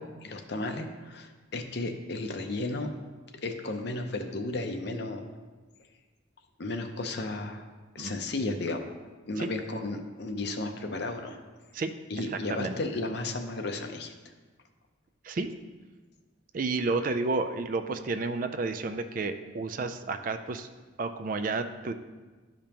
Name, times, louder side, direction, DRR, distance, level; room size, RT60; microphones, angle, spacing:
voice 1, 0.0-2.9 3.4-5.2 6.6-7.6 7.9-8.8 9.3-11.4 12.1-14.1, left 2 dB, 55° left, 5 dB, 0.6 m, -34 dB
voice 2, 11.7-12.8 15.2-15.5 16.5-20.7 21.0-21.9, right 3 dB, 45° right, 8 dB, 0.4 m, -31 dB
12.0 x 5.1 x 2.9 m, 1.3 s
head